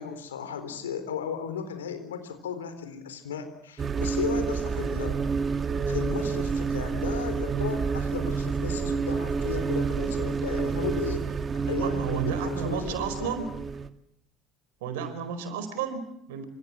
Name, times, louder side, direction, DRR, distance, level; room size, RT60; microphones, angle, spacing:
voice 1, 0.0-5.2 5.9-11.3 11.7-13.4, left 7 dB, 75° left, 9 dB, 3.9 m, -35 dB
sound 1, 3.8-13.9, right 5 dB, 30° right, 2.0 m, -29 dB
voice 2, 11.8-13.5 14.8-16.4, right 7 dB, 65° right, 10 dB, 4.8 m, -32 dB
28.0 x 26.0 x 7.6 m, 0.70 s
figure-of-eight pair, 60°, 0 cm